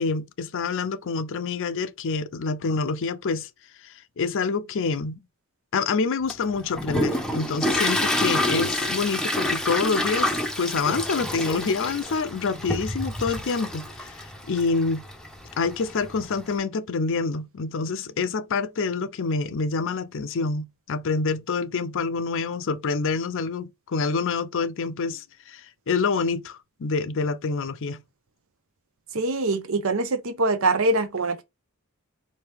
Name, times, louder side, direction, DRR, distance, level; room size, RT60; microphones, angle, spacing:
voice 1, 0.0-3.5 4.2-5.2 5.7-15.0 15.6-25.6 25.9-28.0, left 4 dB, 60° left, 0.5 m, -27 dB
Toilet flush, 6.3-16.5, left 1 dB, 5° left, 0.7 m, -28 dB
voice 2, 29.1-31.4, right 2 dB, 65° right, 0.8 m, -23 dB
4.7 x 2.8 x 3.3 m
head